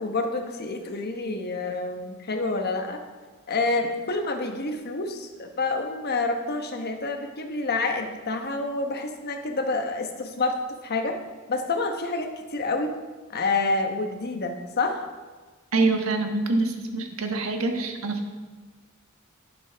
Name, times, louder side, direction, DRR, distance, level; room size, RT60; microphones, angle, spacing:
voice 1, 0.0-3.0 3.5-10.6 10.8-11.2 11.5-12.9 13.3-15.0, left 3 dB, 50° left, 5 dB, 1.1 m, -28 dB
voice 2, 15.7-18.3, right 3 dB, 90° right, 4 dB, 1.3 m, -25 dB
11.0 x 10.5 x 3.5 m, 1.4 s
head